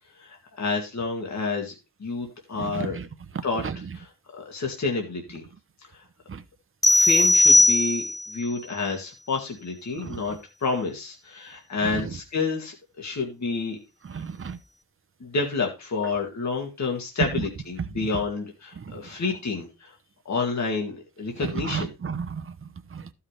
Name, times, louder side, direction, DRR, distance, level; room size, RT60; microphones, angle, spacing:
voice 1, 0.2-1.7 2.0-3.0 3.4-3.6 3.9-5.4 6.9-10.4 10.6-13.8 15.2-19.9 20.3-21.9, left 4 dB, 50° left, 2.1 m, -29 dB
voice 2, 2.6-3.1 3.6-3.8 6.3-6.4 10.0-10.2 11.8-12.1 14.0-14.6 18.8-18.9 21.4-22.5 22.9-23.1, right 6 dB, 35° right, 0.8 m, -33 dB
sound 1, 6.8-8.4, left 2 dB, 10° left, 0.6 m, -18 dB
14.5 x 5.7 x 3.3 m
wide cardioid pair, 170°, 34 cm